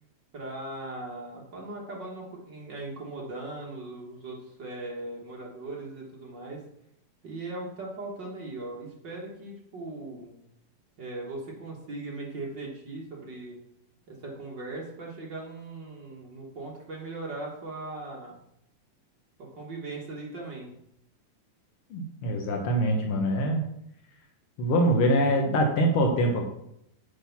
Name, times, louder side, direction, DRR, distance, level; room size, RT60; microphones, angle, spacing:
voice 1, 0.3-6.6 7.2-10.3 11.0-13.6 14.1-18.4 19.4-20.7, right 2 dB, 50° right, -3 dB, 1.4 m, -39 dB
voice 2, 21.9-23.6 24.6-26.4, equal, 85° left, 2 dB, 1.2 m, -24 dB
8.8 x 5.0 x 6.0 m, 0.77 s
omnidirectional pair, 4.1 m